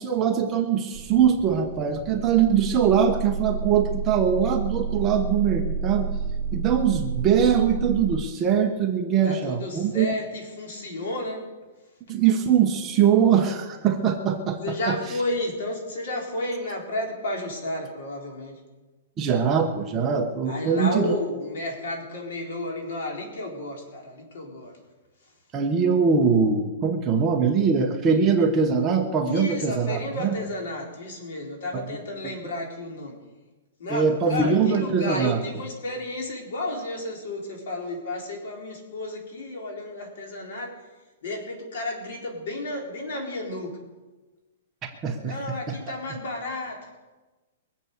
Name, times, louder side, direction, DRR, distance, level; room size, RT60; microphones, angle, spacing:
voice 1, 0.0-6.1 6.5-10.1 12.1-15.0 19.2-21.2 25.5-30.4 31.7-31.8 32.2-32.3 33.9-35.4 45.0-45.4 45.7-45.8, right 7 dB, 15° right, 2 dB, 1.1 m, -22 dB
sound 1, 0.9-8.2, right 5 dB, 60° right, 2.6 m, -30 dB
voice 2, 9.2-11.4 14.6-18.6 20.5-24.7 29.2-33.1 33.8-40.7 41.2-43.7 45.2-46.9, left 1 dB, 60° left, 1 dB, 4.1 m, -32 dB
22.5 x 7.8 x 6.7 m, 1.2 s
hypercardioid pair, 170°, 0 cm